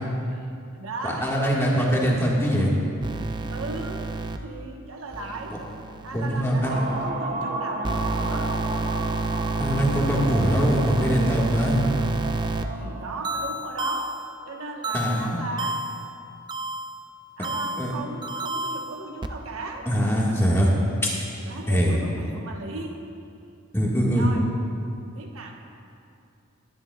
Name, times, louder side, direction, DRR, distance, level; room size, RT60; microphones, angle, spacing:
voice 1, 0.3-1.5 3.5-4.1 4.4-5.6 6.0-8.5 12.8-14.2 14.4-15.8 17.4-19.9 21.4-23.1 24.1-24.5 25.1-25.6, right 3 dB, 75° right, 2 dB, 1.1 m, -37 dB
voice 2, 1.0-2.7 5.5-5.6 6.1-6.8 9.6-11.8 14.9-15.2 17.8-17.9 19.8-20.7 21.0-21.1 21.7-22.0 23.7-24.3, equal, 10° left, -4 dB, 1.5 m, -22 dB
sound 1, 3.0-4.4 5.1-7.1 7.8-12.6 13.2-14.3 14.8-16.1 16.5-17.0 17.4-19.3, right 3 dB, 20° right, 0.4 m, -30 dB
sound 2, 6.6-13.7, right 2 dB, 40° right, 0.9 m, -33 dB
18.0 x 11.0 x 2.3 m, 2.6 s
head